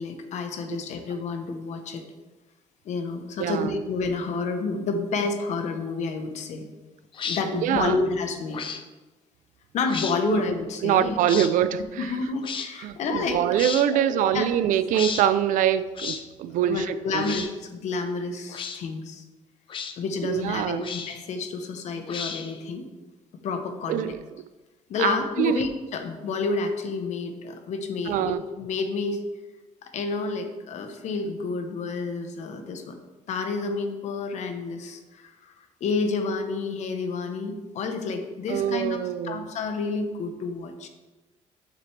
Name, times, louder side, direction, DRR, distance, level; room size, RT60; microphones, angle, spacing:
voice 1, 0.0-2.0 2.8-6.6 7.2-8.6 9.7-11.4 12.0-13.4 13.9-14.5 16.6-19.2 20.0-22.8 23.4-24.0 24.9-29.2 29.8-33.0 33.3-35.5 35.8-39.0 39.2-40.9, left 4 dB, 60° left, 6 dB, 0.9 m, -29 dB
voice 2, 3.4-3.8 7.5-8.0 10.2-10.4 10.8-12.1 12.8-17.3 20.2-20.9 23.9-24.2 25.0-25.6 28.1-28.4 38.5-39.5, right 10 dB, 80° right, 13 dB, 0.4 m, -24 dB
sound 1, 7.1-7.4 8.5-8.8 9.8-10.2 11.3-11.5 12.4-12.7 13.5-13.9 14.9-15.2 16.0-16.2 17.2-17.5 18.5-18.8 19.7-19.9 20.8-21.2 22.1-22.6, left 6 dB, 40° left, 0.6 m, -33 dB
7.5 x 6.6 x 3.3 m, 1.2 s
cardioid pair, 140°, 13 cm